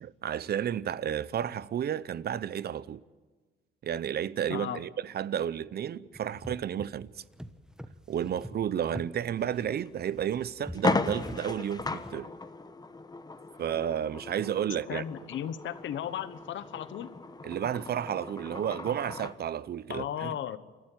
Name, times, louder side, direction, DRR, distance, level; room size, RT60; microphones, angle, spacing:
voice 1, 0.0-3.0 3.8-7.2 8.1-12.3 13.6-15.0 17.4-20.4, right 9 dB, 55° right, 0.7 m, -32 dB
voice 2, 4.5-4.8 14.9-17.1 19.9-20.6, left 10 dB, 70° left, 1.1 m, -35 dB
sound 1, 6.1-12.1, equal, 5° right, 1.1 m, -45 dB
sound 2, 9.8-9.9 10.3-10.4 10.7-19.4, left 3 dB, 20° left, 1.2 m, -36 dB
28.0 x 12.0 x 9.2 m
cardioid pair, 90°, 20 cm